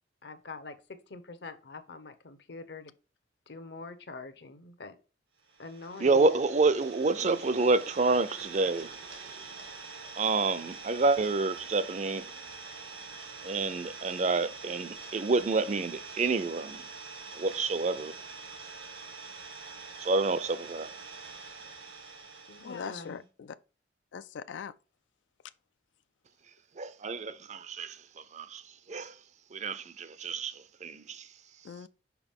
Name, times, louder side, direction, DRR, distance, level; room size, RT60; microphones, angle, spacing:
voice 1, 0.2-2.9 3.5-4.9 5.6-6.3 22.5-23.2, left 3 dB, 65° left, 0.9 m, -45 dB
Idling, 5.5-23.2, right 4 dB, 85° right, 1.7 m, -45 dB
voice 2, 6.0-8.9 9.3-9.4 10.2-12.3 13.4-16.8 17.3-18.1 20.0-20.9 26.8-28.0 28.3-28.6 28.9-29.1 29.5-31.3, right 3 dB, 40° right, 0.5 m, -28 dB
voice 3, 22.6-23.6 24.1-24.7 31.6-31.9, left 6 dB, 85° left, 0.4 m, -41 dB
5.9 x 4.9 x 3.6 m
head